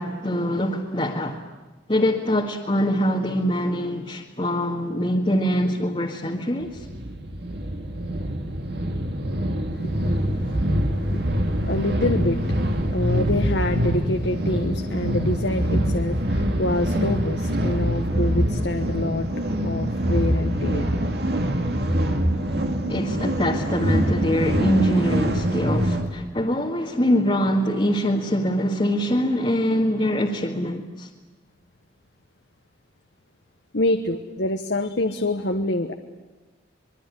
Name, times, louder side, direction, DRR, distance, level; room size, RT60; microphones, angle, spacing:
voice 1, 0.0-1.4 1.9-6.8 22.9-31.1, equal, 30° left, 1.8 m, -23 dB
sound 1, 6.6-26.1, equal, 55° right, 2.5 m, -24 dB
voice 2, 9.7-21.0 22.4-22.5 23.5-23.6 33.7-35.9, left 1 dB, 70° left, 1.3 m, -27 dB
24.5 x 22.5 x 9.9 m
head